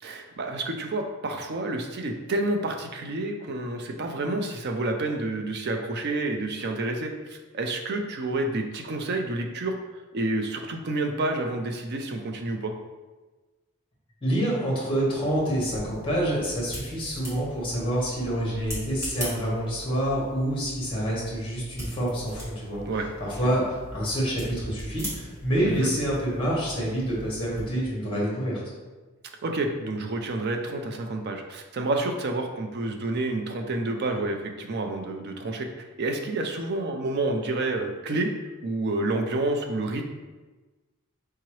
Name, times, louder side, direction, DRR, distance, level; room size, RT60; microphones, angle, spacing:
voice 1, 0.0-12.7 22.9-23.1 25.7-25.9 29.4-38.3 38.6-40.0, right 2 dB, 50° right, 4 dB, 0.4 m, -29 dB
voice 2, 14.2-22.8 23.2-28.6, right 1 dB, 25° left, -4 dB, 1.2 m, -27 dB
sound 1, 15.0-27.7, equal, 15° right, 1.3 m, -40 dB
4.7 x 2.9 x 3.0 m, 1.2 s
head